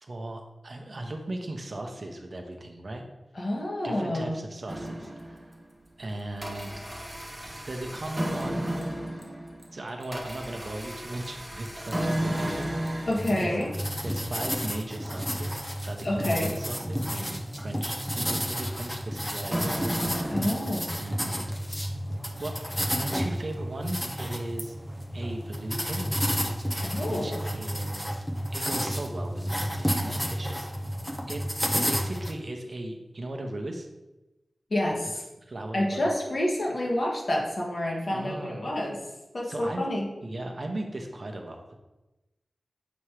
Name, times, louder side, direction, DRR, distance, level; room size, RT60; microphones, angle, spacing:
voice 1, 0.0-3.0 3.8-5.5 6.0-6.7 7.7-8.7 9.7-13.5 14.0-19.7 20.9-21.5 22.4-22.6 22.9-24.7 25.1-26.1 27.1-28.2 28.5-30.7 31.3-31.4 31.9-33.9 35.5-36.1 38.1-38.7 39.4-39.9 40.2-41.7, right 1 dB, 50° right, 3 dB, 0.8 m, -37 dB
voice 2, 3.3-4.4 13.1-13.7 16.0-16.5 20.3-20.9 26.8-27.4 34.7-35.2 35.7-39.0 39.3-40.1, left 1 dB, 60° left, -2 dB, 1.4 m, -28 dB
sound 1, 4.7-5.6 6.1-21.1, right 1 dB, 15° right, 1.0 m, -34 dB
sound 2, 13.2-32.3, equal, 10° left, 0.7 m, -31 dB
7.0 x 3.0 x 4.9 m, 1.0 s
wide cardioid pair, 85°, 0 cm